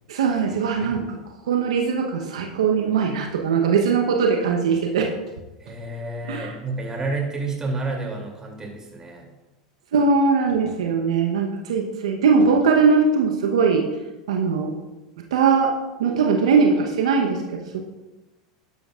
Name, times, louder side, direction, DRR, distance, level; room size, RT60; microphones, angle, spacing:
voice 1, 0.1-1.2 1.5-5.1 6.3-6.6 9.9-13.9 14.3-14.8 15.3-15.7 16.0-17.8, right 5 dB, 75° right, 2 dB, 1.0 m, -20 dB
voice 2, 5.6-9.3, right 3 dB, 20° right, 0 dB, 2.8 m, -30 dB
12.0 x 11.0 x 2.5 m, 1.1 s
hypercardioid pair, 90°, 3 cm